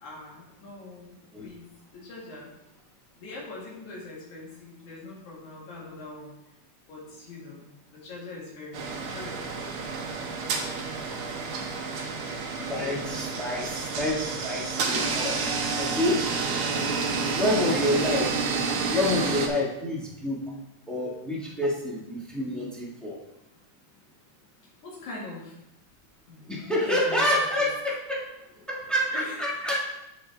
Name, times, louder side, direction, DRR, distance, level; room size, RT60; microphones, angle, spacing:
voice 1, 0.0-2.5 3.1-6.3 6.9-10.1 10.8-11.2 11.9-12.1 12.6-13.0 16.7-16.9 17.5-18.2 24.8-25.6 26.3-27.3 27.6-27.7 29.1-29.6, left 2 dB, 75° left, -5 dB, 3.5 m, -43 dB
sound 1, 8.7-19.5, right 4 dB, 65° right, 1.4 m, -29 dB
voice 2, 12.7-15.4 15.7-16.2 17.3-18.3 18.9-20.4 20.9-23.1 26.5-28.2 28.7-29.7, left 1 dB, ahead, -5 dB, 0.5 m, -28 dB
13.0 x 4.6 x 3.5 m, 0.89 s
omnidirectional pair, 3.4 m